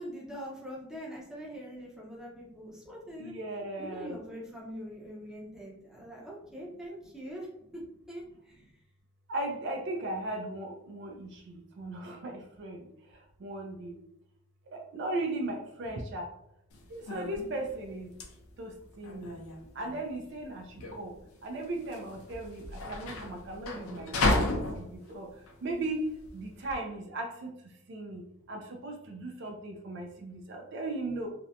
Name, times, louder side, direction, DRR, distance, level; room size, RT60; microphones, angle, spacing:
voice 1, 0.0-3.3 3.8-7.5 8.1-8.6, equal, 5° right, -5 dB, 0.6 m, -43 dB
voice 2, 3.2-4.2 9.3-11.3 11.8-12.8 13.4-13.9 14.7-16.2 16.9-18.1 18.6-18.7 19.0-19.3 19.8-20.6 21.0-21.1 21.4-24.1 24.4-25.3 25.6-26.0 26.3-27.5 27.9-28.2 28.5-31.3, right 2 dB, 55° right, 3 dB, 0.4 m, -37 dB
sound 1, 16.7-26.8, left 2 dB, 90° left, 0.5 m, -34 dB
2.5 x 2.1 x 2.7 m, 0.80 s
head